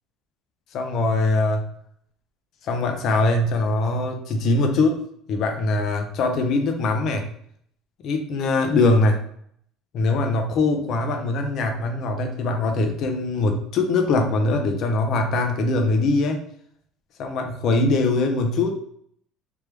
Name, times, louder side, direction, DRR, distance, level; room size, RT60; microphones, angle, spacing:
voice 1, 0.7-1.6 2.6-5.0 5.3-7.3 8.0-9.2 9.9-16.4 17.2-18.8, left 2 dB, 45° left, 4 dB, 0.6 m, -22 dB
3.5 x 3.1 x 3.2 m, 0.66 s
cardioid pair, 165°, 0 cm